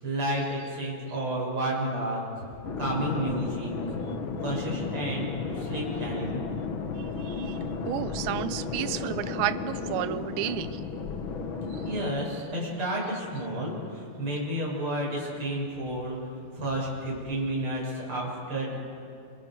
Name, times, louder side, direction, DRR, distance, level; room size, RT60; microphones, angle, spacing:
voice 1, 0.0-2.5 2.8-3.7 4.4-5.3 5.5-6.4 11.8-16.2 16.5-18.8, right 1 dB, 35° right, -4 dB, 7.6 m, -31 dB
sound 1, 2.6-12.0, left 4 dB, 65° left, 1.2 m, -33 dB
voice 2, 7.0-7.6 7.9-10.8 11.7-11.8, right 13 dB, 85° right, 13 dB, 2.6 m, -32 dB
28.5 x 28.5 x 4.9 m, 2.5 s
omnidirectional pair, 4.2 m